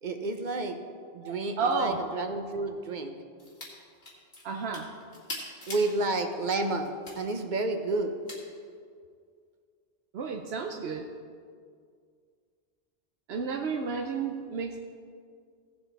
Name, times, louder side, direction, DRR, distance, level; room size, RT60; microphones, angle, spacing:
voice 1, 0.0-0.8 1.1-3.1 5.7-8.1, right 2 dB, 50° right, 6 dB, 1.0 m, -30 dB
voice 2, 1.2-2.0 4.4-4.9 10.1-11.0 13.3-14.8, right 4 dB, 85° right, 2 dB, 1.0 m, -31 dB
sound 1, 3.4-3.7 4.0-5.9 6.4-7.2 8.3-8.4, left 1 dB, 75° left, 2.3 m, -41 dB
16.5 x 6.9 x 4.0 m, 2.1 s
omnidirectional pair, 1.0 m